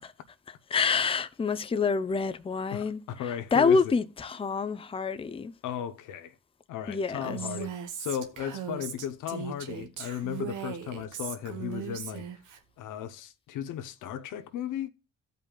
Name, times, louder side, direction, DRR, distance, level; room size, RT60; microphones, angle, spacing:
voice 1, 0.7-5.5 6.9-7.4, left 5 dB, 20° left, 0.5 m, -27 dB
voice 2, 2.7-3.8 5.6-6.3 6.7-7.7 8.0-12.2 12.8-14.9, left 9 dB, 85° left, 0.9 m, -35 dB
Female speech woman speaking, 7.2-12.6, right 8 dB, 80° right, 1.2 m, -38 dB
15.5 x 5.3 x 2.4 m
cardioid pair, 90°, 30 cm